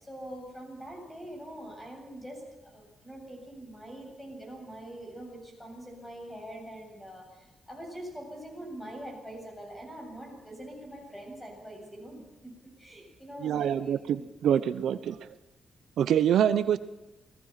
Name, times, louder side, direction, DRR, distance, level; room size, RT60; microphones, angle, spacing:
voice 1, 0.0-14.3, right 1 dB, 5° left, 1 dB, 7.8 m, -44 dB
voice 2, 13.4-15.3 16.0-16.8, right 9 dB, 80° right, 12 dB, 0.9 m, -25 dB
28.5 x 18.5 x 5.9 m, 1.0 s
wide cardioid pair, 165°, 0 cm